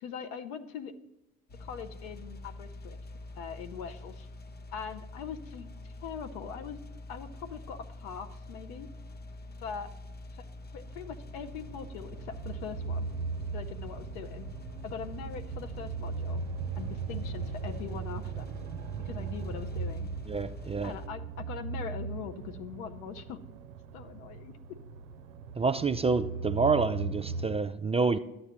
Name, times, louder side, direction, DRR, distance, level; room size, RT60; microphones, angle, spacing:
voice 1, 0.0-0.9 1.6-3.0 3.3-4.3 4.7-6.8 7.1-8.9 9.6-9.9 10.3-10.4 10.7-13.1 13.5-14.5 14.8-16.4 16.7-18.5 19.0-20.1 20.8-23.4 23.9-24.6, left 7 dB, 75° left, 8 dB, 0.8 m, -42 dB
sound 1, 1.5-21.1, left 2 dB, 25° left, 0.6 m, -45 dB
sound 2, 10.9-27.6, right 5 dB, 90° right, 0.5 m, -38 dB
voice 2, 20.3-20.9 25.6-28.2, right 4 dB, 15° right, 10 dB, 0.3 m, -28 dB
11.5 x 8.1 x 2.9 m, 0.95 s
hypercardioid pair, 55°, 40 cm